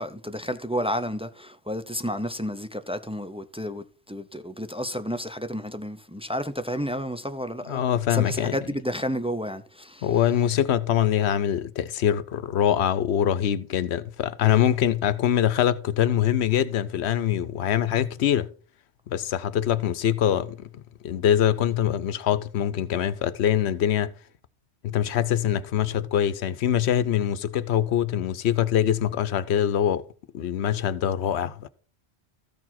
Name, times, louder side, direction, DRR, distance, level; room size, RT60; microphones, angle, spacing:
voice 1, 0.0-7.8 8.1-10.1, equal, 10° right, 0.3 m, -31 dB
voice 2, 7.7-8.6 10.0-18.5 19.1-24.1 24.8-30.0 30.3-31.7, left 10 dB, 80° left, 0.9 m, -24 dB
14.0 x 4.8 x 5.8 m
omnidirectional pair, 1.1 m